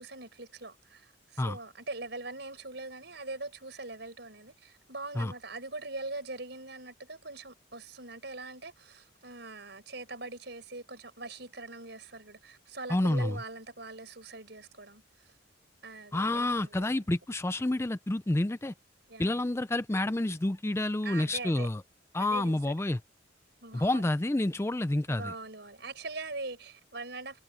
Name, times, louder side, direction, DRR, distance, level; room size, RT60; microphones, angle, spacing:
voice 1, 0.0-15.0 15.8-17.1 19.1-19.3 21.0-21.7 22.2-22.6 23.6-24.1 25.1-27.4, right 3 dB, 60° right, 6.8 m, -42 dB
voice 2, 12.9-13.4 16.1-18.7 19.2-21.8 22.1-23.0 23.7-25.3, left 1 dB, 15° left, 0.4 m, -29 dB
head